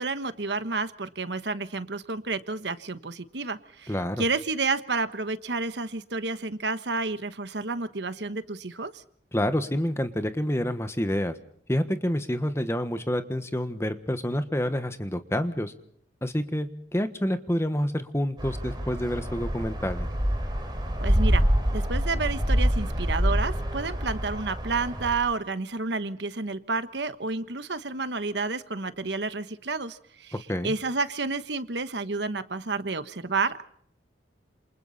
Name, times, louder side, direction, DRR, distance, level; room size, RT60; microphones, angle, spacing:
voice 1, 0.0-9.0 21.0-21.5 21.7-33.6, right 3 dB, 70° right, 11 dB, 1.3 m, -30 dB
voice 2, 3.9-4.2 9.3-11.3 11.7-15.7 16.2-20.1 30.5-30.7, equal, 15° left, 9 dB, 1.3 m, -28 dB
sound 1, 18.4-25.1, equal, 25° right, 3.9 m, -26 dB
28.0 x 28.0 x 4.2 m, 0.65 s
head